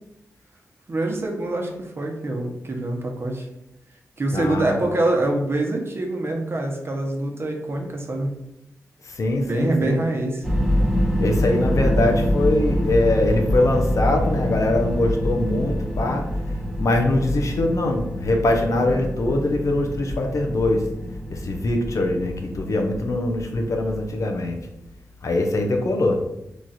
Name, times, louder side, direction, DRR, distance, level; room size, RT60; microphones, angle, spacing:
voice 1, 0.9-3.5 4.2-8.3 9.4-10.5, right 2 dB, 45° right, 1 dB, 0.8 m, -25 dB
voice 2, 4.3-4.8 9.0-10.0 11.2-16.3 16.8-20.9 21.3-24.6 25.2-26.2, left 2 dB, 65° left, 2 dB, 0.6 m, -22 dB
sound 1, 10.4-24.4, equal, 5° right, 1.0 m, -25 dB
3.1 x 2.4 x 4.0 m, 0.83 s
cardioid pair, 60°, 6 cm